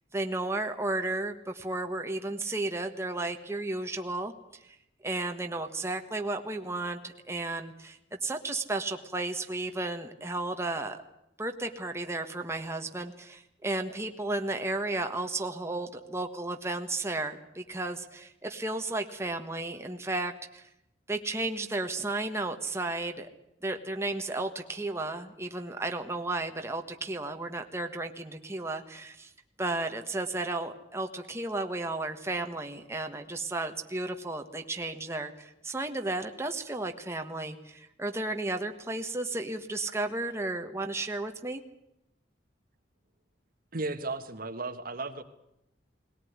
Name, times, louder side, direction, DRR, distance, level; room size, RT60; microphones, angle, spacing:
voice 1, 0.1-4.3 4.6-4.7 5.0-11.0 11.4-20.7 21.1-23.3 23.6-29.3 29.6-41.6, right 2 dB, 15° right, 4 dB, 1.5 m, -33 dB
voice 2, 43.7-45.2, right 2 dB, 50° right, 9 dB, 1.5 m, -35 dB
20.0 x 18.0 x 9.6 m, 0.84 s
head